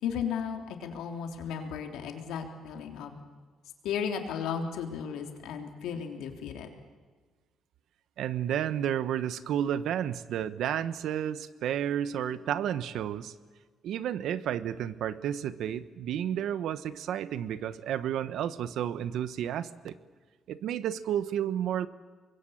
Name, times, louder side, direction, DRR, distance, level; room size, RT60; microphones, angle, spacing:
voice 1, 0.0-3.2 3.8-6.7, left 7 dB, 90° left, 4 dB, 3.4 m, -35 dB
voice 2, 8.2-13.3 13.8-19.9 20.5-21.9, right 10 dB, 80° right, 14 dB, 1.1 m, -31 dB
25.0 x 21.5 x 8.7 m, 1.4 s
cardioid pair, 90°, 0 cm